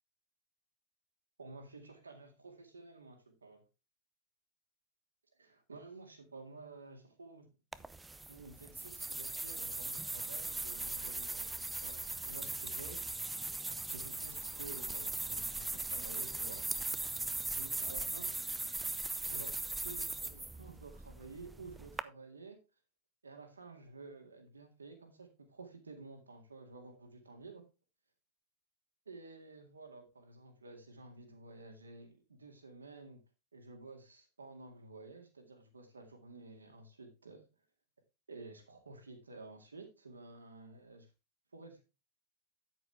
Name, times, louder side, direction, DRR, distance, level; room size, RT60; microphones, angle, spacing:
voice 1, 1.4-3.6 5.4-7.5 8.3-13.0 13.9-16.6 17.5-18.4 19.2-22.6 23.2-27.7 29.1-33.2 33.5-37.4 38.3-41.1 41.5-41.8, right 3 dB, 75° right, 4 dB, 2.0 m, -52 dB
sound 1, 7.7-22.0, right 2 dB, 10° right, 0.6 m, -39 dB
9.3 x 9.1 x 3.4 m, 0.28 s
figure-of-eight pair, 90°, 0 cm